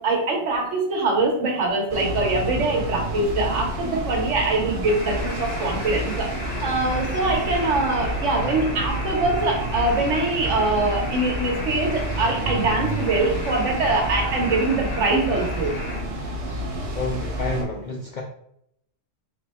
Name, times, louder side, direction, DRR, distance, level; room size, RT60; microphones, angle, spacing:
voice 1, 0.0-6.3 6.6-15.8, right 2 dB, 70° right, 1 dB, 1.3 m, -23 dB
sound 1, 1.9-17.6, equal, 35° right, 0.6 m, -29 dB
sound 2, 4.9-16.0, left 2 dB, 85° left, 1.3 m, -35 dB
voice 2, 16.9-18.2, left 1 dB, 65° left, 0 dB, 0.4 m, -29 dB
3.8 x 2.2 x 4.1 m, 0.73 s
omnidirectional pair, 1.3 m